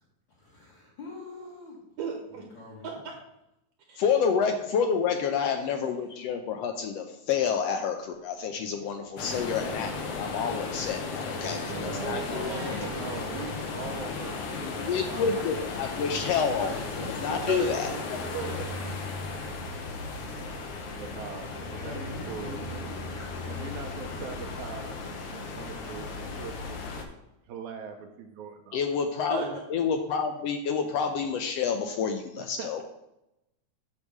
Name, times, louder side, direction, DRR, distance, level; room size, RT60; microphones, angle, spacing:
voice 1, 0.3-1.8 2.3-3.1 12.4-14.3 21.7-24.1, left 3 dB, 50° left, -6 dB, 1.8 m, -45 dB
voice 2, 2.0-2.4 2.8-3.1 3.9-4.0 4.4-4.6 5.5-6.0 9.3-10.2 11.4-13.5 17.4-18.9 21.6-21.9 29.3-29.5, right 6 dB, 65° right, 1 dB, 2.0 m, -38 dB
voice 3, 4.0-12.8 14.6-18.3 28.7-32.8, left 6 dB, 80° left, 5 dB, 1.5 m, -29 dB
sound 1, 8.0-10.9 11.2-11.3 11.6-11.7 12.0-12.1 13.3-13.4 15.1-16.0, left 1 dB, 40° right, 1.2 m, -52 dB
sound 2, 9.2-27.0, left 3 dB, 65° left, 1.7 m, -35 dB
voice 4, 11.7-12.7 13.0-15.5 16.6-17.5 20.2-20.6 20.9-22.8 23.4-27.1 27.5-28.8 32.4-32.8, right 6 dB, 85° right, 3 dB, 2.1 m, -42 dB
8.6 x 3.2 x 6.4 m, 0.87 s
omnidirectional pair, 3.3 m